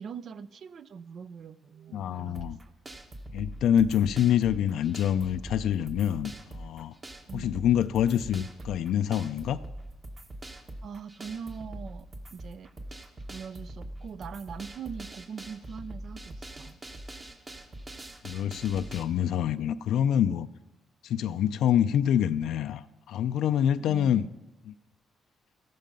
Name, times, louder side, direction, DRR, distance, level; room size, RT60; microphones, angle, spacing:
voice 1, 0.0-2.5 7.3-7.5 10.8-12.7 13.3-16.8 23.8-24.3, right 6 dB, 60° right, 15 dB, 0.5 m, -42 dB
voice 2, 1.9-2.6 3.3-6.9 7.3-9.6 18.2-20.5 21.0-24.3 24.7-24.8, left 10 dB, 80° left, 10 dB, 0.4 m, -26 dB
sound 1, 2.3-19.0, right 1 dB, 30° right, 1.4 m, -43 dB
14.0 x 12.0 x 5.3 m, 1.0 s
cardioid pair, 90°, 0 cm